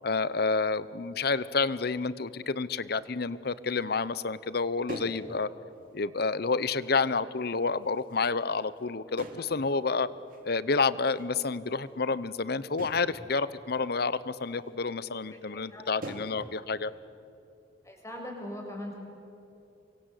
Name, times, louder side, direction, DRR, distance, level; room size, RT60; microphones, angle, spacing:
voice 1, 0.0-5.5 5.9-10.1 10.4-16.9, left 4 dB, 60° left, 17 dB, 0.9 m, -29 dB
sound 1, 3.5-3.6 3.9-4.0 4.5-4.6 4.9-5.3 5.7-5.8 6.6-7.0 7.7-8.8 9.2-9.7 10.3-10.5 11.1-11.2 12.8-13.1 14.0-14.1 14.5-14.7 15.0-15.1 15.5-15.7 16.0-16.4, right 1 dB, 50° right, 3.0 m, -43 dB
voice 2, 15.5-16.1 17.8-18.9, left 1 dB, 15° left, 0 dB, 6.7 m, -41 dB
28.5 x 25.0 x 8.4 m, 2.8 s
head